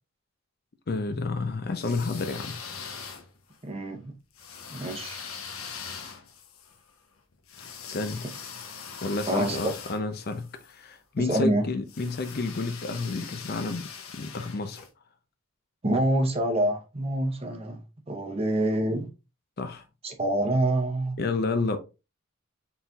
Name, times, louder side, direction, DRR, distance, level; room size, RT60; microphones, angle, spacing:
voice 1, 0.9-2.6 7.8-8.3 9.0-14.8 19.6-19.8 21.2-21.8, left 3 dB, 50° left, 0.5 m, -30 dB
sound 1, 1.7-3.6 4.4-10.7 11.9-14.9, left 6 dB, 85° left, 0.7 m, -42 dB
voice 2, 3.6-4.1 4.7-5.2 9.3-9.6 11.2-11.6 15.8-17.8 18.1-19.1 20.0-21.2, right 1 dB, 30° right, 0.7 m, -26 dB
4.2 x 3.8 x 2.3 m
head